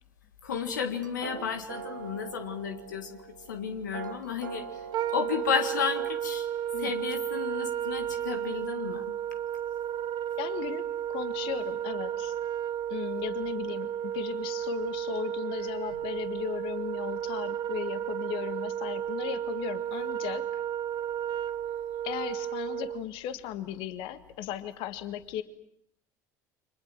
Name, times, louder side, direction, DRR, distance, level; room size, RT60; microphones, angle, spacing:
voice 1, 0.4-3.2 3.5-4.9 5.1-6.5 6.8-9.1, left 7 dB, 80° left, 7 dB, 1.7 m, -32 dB
sound 1, 0.8-6.1, right 6 dB, 90° right, 1.4 m, -43 dB
Wind instrument woodwind instrument, 4.9-23.0, right 10 dB, 50° right, 1.1 m, -33 dB
voice 2, 10.4-10.8 11.1-12.3 12.9-20.6 22.0-25.4, left 11 dB, 60° left, 11 dB, 1.9 m, -36 dB
30.0 x 25.5 x 7.5 m, 0.69 s
figure-of-eight pair, 65°, 10 cm